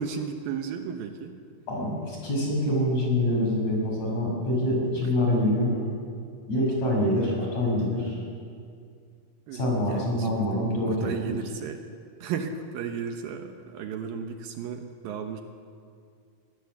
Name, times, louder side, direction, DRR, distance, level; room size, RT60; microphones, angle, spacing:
voice 1, 0.0-1.4 5.0-5.1 9.5-10.7 11.0-11.8 12.2-15.4, right 6 dB, 70° right, 5 dB, 2.7 m, -34 dB
voice 2, 1.7-5.8 6.5-8.2 9.5-11.1, left 1 dB, 45° left, -1 dB, 6.9 m, -25 dB
23.0 x 18.0 x 7.2 m, 2.3 s
omnidirectional pair, 4.5 m